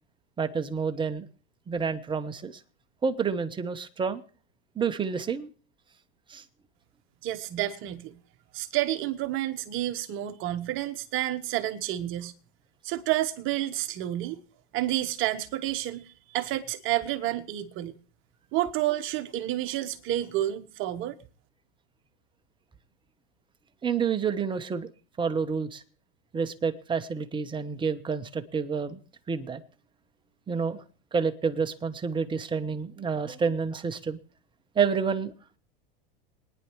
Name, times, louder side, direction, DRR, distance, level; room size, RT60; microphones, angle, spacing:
voice 1, 0.4-1.3 1.7-2.6 3.0-4.2 4.8-5.5 6.3-6.4 23.8-24.9 25.2-25.8 26.3-29.0 29.3-29.6 30.5-30.8 31.1-34.2 34.7-35.3, right 6 dB, 15° right, 1.0 m, -29 dB
voice 2, 7.2-8.2 8.5-12.3 12.8-14.4 14.7-17.9 18.5-21.2, right 14 dB, 45° right, 1.2 m, -30 dB
23.0 x 10.0 x 3.1 m
supercardioid pair, 115°, 29 cm